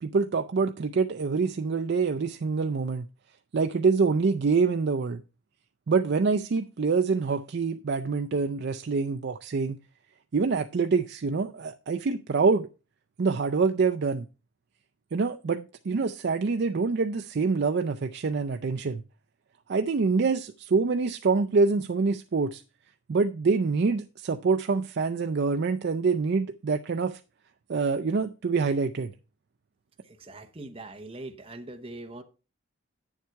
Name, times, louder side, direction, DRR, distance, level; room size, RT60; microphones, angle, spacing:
voice 1, 0.0-3.1 3.5-5.2 5.9-9.8 10.3-12.7 13.2-14.3 15.1-19.0 19.7-22.6 23.1-27.2 27.7-29.1, right 4 dB, 50° right, 0.4 m, -26 dB
voice 2, 30.2-32.2, right 2 dB, 25° right, 0.9 m, -41 dB
9.4 x 7.3 x 4.6 m
head